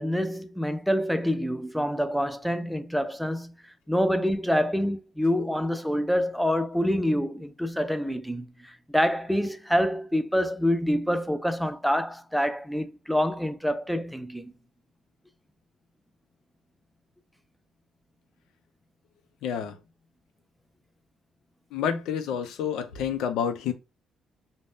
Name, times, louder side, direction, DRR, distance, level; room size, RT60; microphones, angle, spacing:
voice 1, 0.0-3.5 3.9-14.5, equal, ahead, 0.4 m, -26 dB
voice 2, 19.4-19.8 21.7-23.7, left 8 dB, 90° left, 0.5 m, -29 dB
2.6 x 2.1 x 3.4 m
cardioid pair, 90°, 0 cm